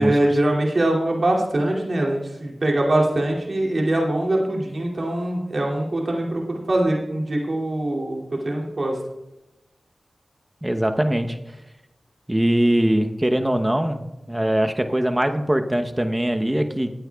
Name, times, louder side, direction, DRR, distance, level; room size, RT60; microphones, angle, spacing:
voice 1, 0.0-8.9, right 1 dB, 60° right, -2 dB, 2.6 m, -23 dB
voice 2, 10.6-11.4 12.3-16.9, right 1 dB, 15° right, 6 dB, 0.9 m, -22 dB
17.5 x 8.8 x 2.4 m, 0.94 s
cardioid pair, 40°, 0 cm